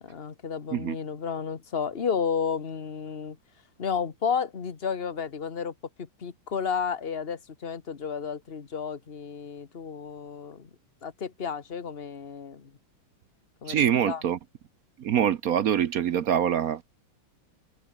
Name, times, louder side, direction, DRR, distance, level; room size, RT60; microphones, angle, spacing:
voice 1, 0.0-3.4 3.8-10.7 11.0-12.7 13.6-13.8 14.0-14.2, left 6 dB, 30° left, 1.5 m, -32 dB
voice 2, 13.7-14.4 15.0-16.8, right 9 dB, 65° right, 0.9 m, -24 dB
omnidirectional pair, 2.3 m